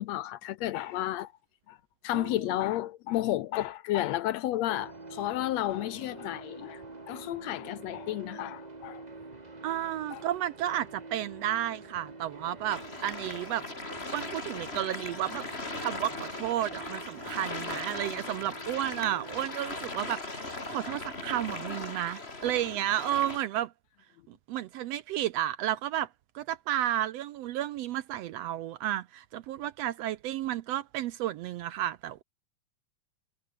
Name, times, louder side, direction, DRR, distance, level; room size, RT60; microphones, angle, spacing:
voice 1, 0.0-1.3 1.7-1.8 2.0-6.8 7.1-9.0 10.1-10.2, left 14 dB, 75° left, 1.7 m, -32 dB
sound 1, 4.7-19.5, right 3 dB, 15° right, 1.6 m, -47 dB
voice 2, 9.6-13.7 14.1-15.5 15.8-23.7 24.3-26.1 26.3-32.2, right 12 dB, 75° right, 1.6 m, -32 dB
sound 2, 12.7-23.4, left 2 dB, 20° left, 3.3 m, -39 dB
omnidirectional pair, 3.4 m